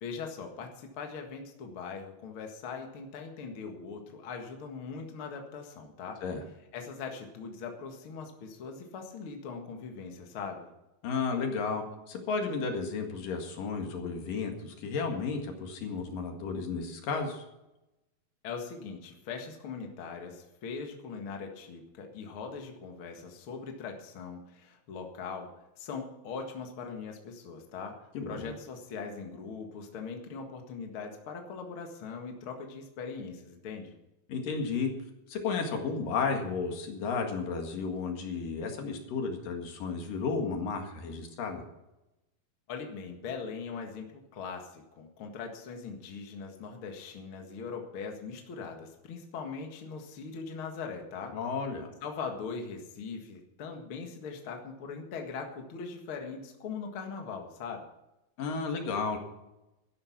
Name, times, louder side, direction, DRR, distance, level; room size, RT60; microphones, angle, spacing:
voice 1, 0.0-6.2 6.7-10.7 18.4-33.9 42.7-51.4 52.0-57.9, left 5 dB, 45° left, 3 dB, 2.0 m, -41 dB
voice 2, 11.0-17.4 28.1-28.5 34.3-34.9 35.3-41.6 51.3-51.9 58.4-59.2, left 5 dB, 65° left, 3 dB, 3.4 m, -33 dB
13.0 x 11.0 x 5.9 m, 0.95 s
omnidirectional pair, 4.3 m